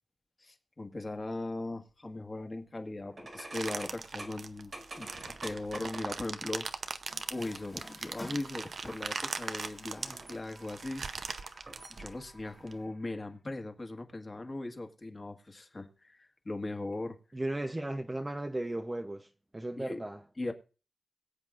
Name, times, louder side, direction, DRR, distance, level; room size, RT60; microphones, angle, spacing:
voice 1, 0.4-4.7 5.0-7.0 7.3-11.2 11.9-17.2 19.8-20.0 20.4-20.5, left 2 dB, 30° left, 1.6 m, -39 dB
sound 1, 3.1-6.4 8.9-9.1 9.6-10.5 11.5-12.0, right 2 dB, 40° right, 2.0 m, -47 dB
sound 2, 3.5-12.7, right 4 dB, 60° right, 0.7 m, -40 dB
Water tap faucet, 7.1-13.4, left 1 dB, 5° left, 1.5 m, -53 dB
voice 2, 17.3-19.3 19.5-20.2, right 1 dB, 15° right, 0.7 m, -35 dB
22.5 x 8.0 x 2.5 m
wide cardioid pair, 110°, 0 cm